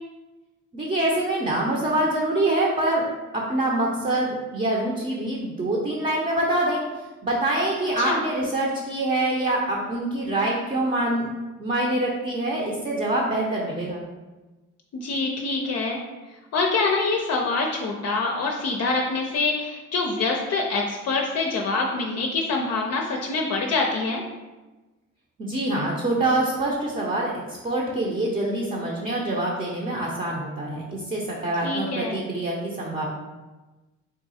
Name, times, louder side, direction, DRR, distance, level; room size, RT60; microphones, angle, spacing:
voice 1, 0.7-3.0 3.3-6.8 7.2-11.3 11.6-14.0 25.4-33.1, right 1 dB, 25° right, -3 dB, 0.7 m, -25 dB
voice 2, 14.9-16.0 16.5-24.2 31.6-32.2, left 3 dB, 55° left, 0 dB, 0.5 m, -25 dB
3.7 x 2.3 x 4.1 m, 1.2 s
cardioid pair, 90°, 30 cm